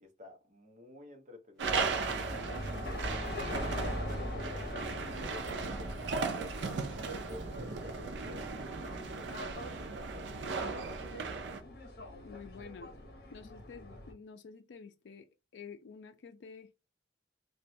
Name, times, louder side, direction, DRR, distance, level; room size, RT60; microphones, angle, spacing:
voice 1, 0.0-11.5, left 2 dB, 40° right, 0.8 m, -53 dB
sound 1, 1.5-10.0, right 1 dB, ahead, 0.8 m, -60 dB
sound 2, 1.6-14.1, left 1 dB, 55° left, 0.9 m, -42 dB
sound 3, 1.6-11.6, right 4 dB, 80° right, 0.5 m, -37 dB
voice 2, 12.2-12.9 13.3-15.3 15.5-16.7, left 5 dB, 80° left, 0.4 m, -49 dB
3.0 x 2.2 x 2.6 m
head